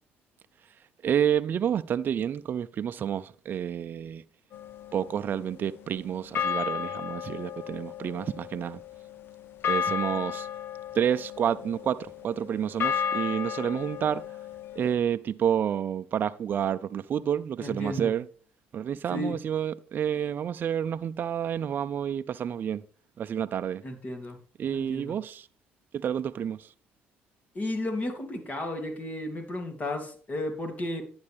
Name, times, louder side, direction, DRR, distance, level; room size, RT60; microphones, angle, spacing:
voice 1, 1.0-4.2 4.9-8.8 9.6-10.5 10.9-14.2 14.8-18.3 18.7-22.8 23.2-23.8 24.6-25.5 25.9-26.7, right 9 dB, 50° right, 0.5 m, -29 dB
sound 1, 4.5-5.9 6.3-15.0, left 7 dB, 60° left, 0.7 m, -34 dB
voice 2, 17.6-18.1 19.1-19.4 23.8-24.4 24.7-25.2 27.5-31.0, left 1 dB, 35° left, 2.8 m, -33 dB
11.5 x 9.6 x 3.5 m
supercardioid pair, 75°, 4 cm